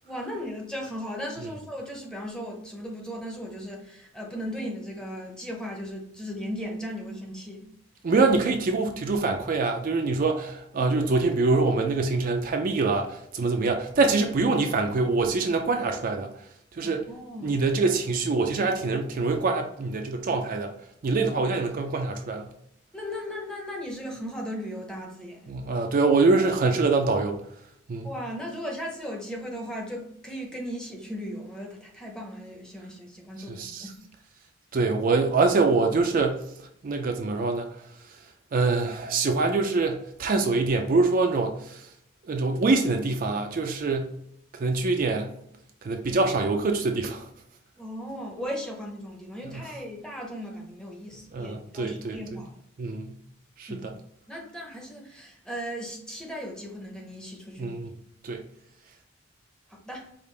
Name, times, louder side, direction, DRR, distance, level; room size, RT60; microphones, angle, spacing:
voice 1, 0.0-7.7 16.8-17.6 22.9-25.6 28.0-34.0 47.8-52.6 53.7-53.9 54.3-57.8 59.7-60.1, equal, 5° left, 0.7 m, -37 dB
voice 2, 8.0-16.3 16.7-17.1 17.4-20.7 21.0-22.5 25.5-27.4 27.9-28.1 33.5-33.9 34.7-36.4 36.8-37.7 38.5-41.9 42.3-44.1 44.5-45.3 45.8-47.3 49.5-49.6 51.3-52.2 52.8-53.1 53.6-53.9 57.6-57.9 58.2-58.4, right 3 dB, 45° right, 0.4 m, -24 dB
5.1 x 2.5 x 3.2 m
head